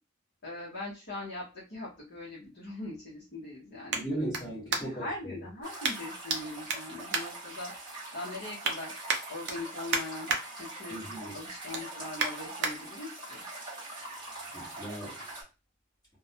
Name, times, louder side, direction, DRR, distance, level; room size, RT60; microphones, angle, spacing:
voice 1, 0.4-4.3 4.7-7.7 8.1-8.9 9.3-10.3 10.6-11.0 11.3-13.4, left 2 dB, 55° left, 0.7 m, -41 dB
sound 1, 1.1-5.2 5.8-6.4 6.7-8.0 8.3-8.8 9.1-10.4 10.8-11.1 11.4-12.7 13.3-13.4, right 4 dB, 50° right, 0.4 m, -34 dB
voice 2, 3.9-5.1 10.9-11.3 14.5-15.2, right 1 dB, 20° left, 1.0 m, -37 dB
sound 2, 5.6-15.4, right 2 dB, 20° right, 0.9 m, -43 dB
2.3 x 2.0 x 2.6 m
head